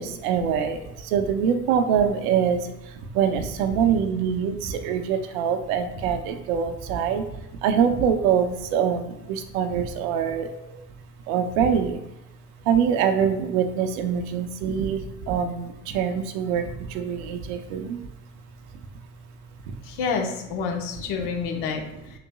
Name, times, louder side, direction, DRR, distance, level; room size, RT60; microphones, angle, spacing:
voice 1, 0.0-10.5 11.3-12.0 12.6-18.0 19.7-19.8, right 7 dB, 75° right, 7 dB, 0.7 m, -24 dB
voice 2, 19.8-22.2, left 5 dB, 65° left, 2 dB, 1.2 m, -29 dB
5.1 x 4.0 x 2.3 m, 0.92 s
hypercardioid pair, 65°, 42 cm